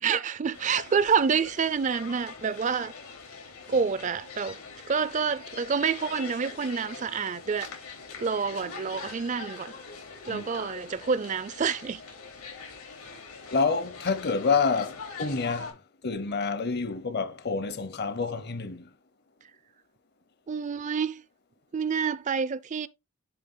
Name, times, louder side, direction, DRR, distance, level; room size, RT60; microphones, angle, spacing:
voice 1, 0.0-2.9 3.7-4.6 4.9-7.7 8.2-9.7 10.3-12.0 20.5-21.2 21.7-22.9, right 6 dB, 35° right, 0.4 m, -28 dB
sound 1, 0.5-15.7, left 5 dB, 90° left, 3.3 m, -43 dB
voice 2, 13.5-15.7 16.0-18.8, left 4 dB, 50° left, 0.8 m, -28 dB
10.0 x 3.7 x 3.9 m
head